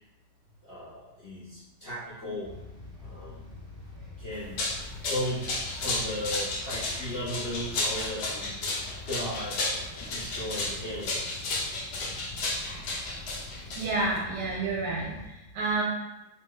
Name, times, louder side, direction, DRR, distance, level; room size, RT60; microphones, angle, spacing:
voice 1, 0.6-2.5 3.0-3.5 4.2-4.7 5.1-8.6 9.1-9.6 10.1-11.7 12.0-12.2, equal, 60° left, -10 dB, 0.6 m, -36 dB
sound 1, 2.4-15.3, left 2 dB, 30° right, 0.9 m, -45 dB
sound 2, 4.3-14.2, left 2 dB, 75° left, 1.2 m, -33 dB
voice 2, 13.8-15.8, right 3 dB, 85° right, -4 dB, 1.3 m, -30 dB
3.1 x 2.8 x 2.2 m, 0.98 s
omnidirectional pair, 1.8 m